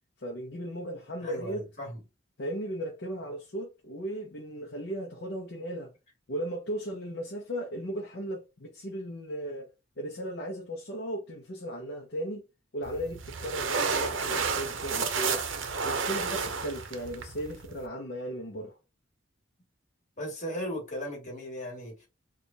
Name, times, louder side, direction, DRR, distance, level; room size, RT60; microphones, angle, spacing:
voice 1, 0.2-1.7 2.4-5.9 6.3-9.7 10.0-12.4 12.7-15.5 15.8-18.8, right 1 dB, 55° left, 0.7 m, -36 dB
voice 2, 1.2-2.0 20.2-22.1, equal, 40° left, 2.0 m, -37 dB
sound 1, 12.8-17.9, right 5 dB, 70° right, 0.7 m, -31 dB
4.6 x 2.4 x 2.7 m
head